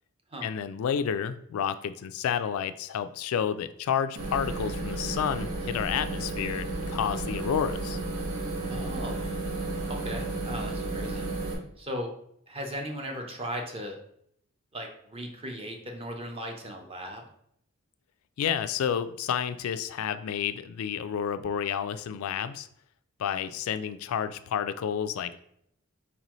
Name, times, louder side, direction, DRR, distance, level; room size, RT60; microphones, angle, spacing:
voice 1, 0.4-8.0 18.4-22.7 23.2-25.4, left 8 dB, 70° left, 12 dB, 0.3 m, -30 dB
sound 1, 4.2-11.5, right 2 dB, 85° right, 1.1 m, -33 dB
voice 2, 8.7-9.2 9.9-11.3 11.8-12.1 12.5-14.0 14.7-17.3, equal, 25° right, 2 dB, 0.7 m, -37 dB
4.4 x 4.0 x 3.0 m, 0.70 s
head